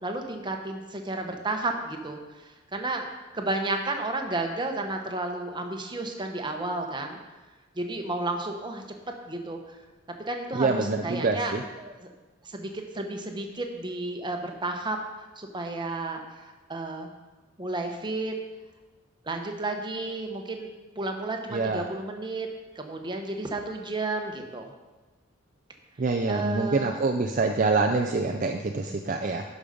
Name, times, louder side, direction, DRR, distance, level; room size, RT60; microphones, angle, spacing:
voice 1, 0.0-2.2 2.7-3.1 3.3-7.2 7.8-8.8 9.3-9.6 10.3-12.1 12.4-15.0 15.4-16.2 16.7-17.1 17.6-18.3 19.3-20.7 21.0-22.5 22.8-24.7 26.3-26.9, right 2 dB, 25° right, 4 dB, 1.0 m, -32 dB
voice 2, 10.6-11.6 21.5-21.8 26.0-29.4, right 3 dB, 40° right, 3 dB, 0.5 m, -26 dB
12.0 x 5.4 x 5.1 m, 1.2 s
head